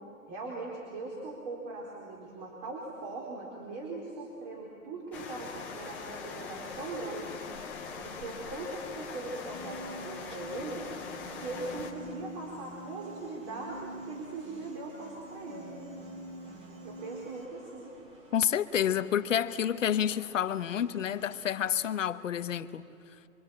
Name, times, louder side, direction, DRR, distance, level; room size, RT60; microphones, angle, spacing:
voice 1, 0.3-7.4 8.0-10.9 11.4-15.7 16.8-17.9, right 2 dB, 30° right, 4.2 m, -40 dB
sound 1, 5.1-11.9, left 5 dB, 5° left, 0.5 m, -42 dB
sound 2, 9.3-21.9, right 1 dB, 15° right, 1.9 m, -56 dB
Piano, 9.4-17.5, right 1 dB, 70° right, 7.5 m, -46 dB
voice 2, 18.3-22.8, left 9 dB, 60° left, 1.0 m, -29 dB
26.0 x 24.0 x 8.8 m
hypercardioid pair, 150°, 42 cm